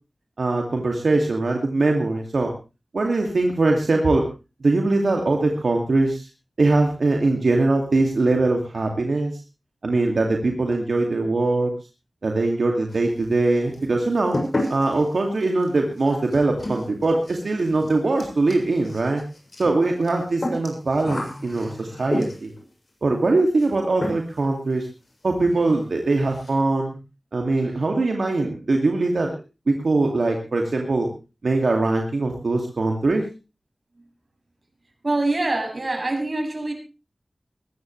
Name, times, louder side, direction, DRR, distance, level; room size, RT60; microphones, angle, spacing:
voice 1, 0.4-2.5 2.9-4.2 4.6-6.3 6.6-9.4 9.8-11.7 12.2-14.4 14.7-19.2 19.6-22.5 23.0-24.9 25.2-27.0 27.3-29.3 29.7-31.1 31.4-33.2, right 2 dB, 80° right, 2 dB, 2.5 m, -22 dB
sound 1, 12.9-13.5 13.7-22.6 23.6-23.8 24.0-24.5 24.8-24.9 25.2-25.3 25.6-25.8 26.1-26.6, left 1 dB, 55° left, 7.0 m, -32 dB
voice 2, 35.0-36.7, right 2 dB, 50° right, 3 dB, 7.6 m, -24 dB
21.0 x 14.5 x 3.3 m, 0.31 s
wide cardioid pair, 60°, 0 cm